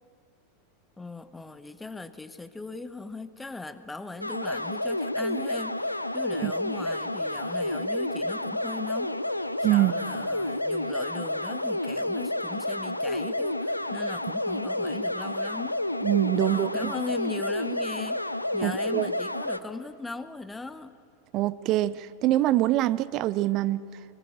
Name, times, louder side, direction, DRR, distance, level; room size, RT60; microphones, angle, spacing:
voice 1, 1.0-15.8 16.3-18.3 18.5-20.9, left 3 dB, 10° left, 12 dB, 1.1 m, -39 dB
sound 1, 4.2-19.6, left 1 dB, 85° left, 0.7 m, -30 dB
voice 2, 16.0-16.9 18.6-19.1 21.3-23.8, right 15 dB, 40° right, 17 dB, 0.8 m, -24 dB
24.5 x 22.0 x 7.4 m, 2.3 s
figure-of-eight pair, 85°, 0 cm